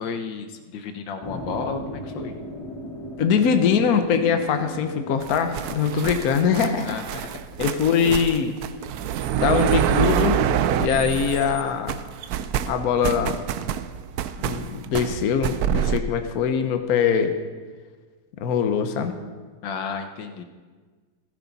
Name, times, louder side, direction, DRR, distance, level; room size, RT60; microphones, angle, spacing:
voice 1, 0.0-2.3 6.9-7.2 19.6-20.4, left 5 dB, 80° left, 7 dB, 1.6 m, -32 dB
sound 1, 1.2-7.5, right 1 dB, 20° left, 1.0 m, -38 dB
voice 2, 3.2-7.0 7.6-8.6 9.3-10.4 10.8-12.0 12.7-13.4 14.4-17.3 18.4-19.2, left 7 dB, 55° left, 7 dB, 1.3 m, -22 dB
sound 2, 5.2-11.6 11.9-16.0, right 9 dB, 70° right, 0.9 m, -26 dB
15.0 x 14.5 x 4.1 m, 1.4 s
omnidirectional pair, 2.0 m